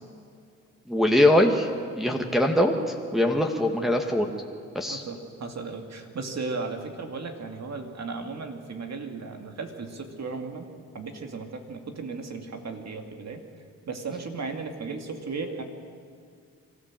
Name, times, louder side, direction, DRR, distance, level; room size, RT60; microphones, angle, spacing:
voice 1, 0.9-1.7 2.0-4.3 4.7-5.0, left 1 dB, ahead, 1 dB, 1.9 m, -22 dB
voice 2, 4.9-10.7 10.9-13.4 13.9-15.6, right 4 dB, 55° right, 4 dB, 2.5 m, -35 dB
25.0 x 14.0 x 7.6 m, 2.2 s
cardioid pair, 65°, 32 cm